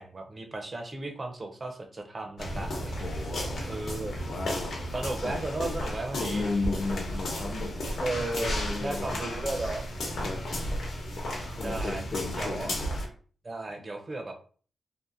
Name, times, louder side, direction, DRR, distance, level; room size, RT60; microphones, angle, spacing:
voice 1, 0.0-3.1 3.6-4.1 4.9-6.4 7.3-7.5 8.0-8.5 8.8-9.9 11.6-12.0 12.3-12.7 13.4-14.3, right 2 dB, 30° right, 4 dB, 0.5 m, -35 dB
sound 1, 2.4-13.1, equal, 70° left, 0.8 m, -33 dB
voice 2, 3.0-3.6 4.3-4.8 5.2-5.4 6.1-7.8 8.3-9.1 10.2-10.4 11.6-12.7, left 3 dB, 40° left, 4 dB, 0.5 m, -34 dB
2.7 x 2.5 x 2.4 m, 0.42 s
wide cardioid pair, 135°, 0 cm